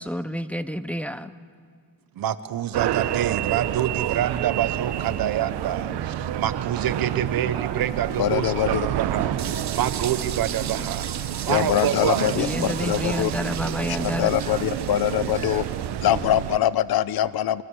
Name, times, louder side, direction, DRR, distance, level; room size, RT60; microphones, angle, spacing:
voice 1, 0.0-1.4 12.4-14.3, equal, 5° left, 12 dB, 0.6 m, -29 dB
voice 2, 2.2-11.1 11.4-12.4, right 11 dB, 60° right, 13 dB, 1.1 m, -27 dB
sound 1, 2.7-16.6, right 11 dB, 85° right, 1.0 m, -29 dB
sound 2, 7.3-16.9, right 3 dB, 20° right, 1.5 m, -47 dB
voice 3, 8.2-8.9 11.5-13.3 13.9-15.7 16.0-17.6, left 12 dB, 65° left, 16 dB, 0.8 m, -23 dB
sound 3, 9.4-16.2, right 10 dB, 45° right, 0.8 m, -37 dB
27.0 x 25.5 x 6.4 m, 2.1 s
cardioid pair, 140°, 39 cm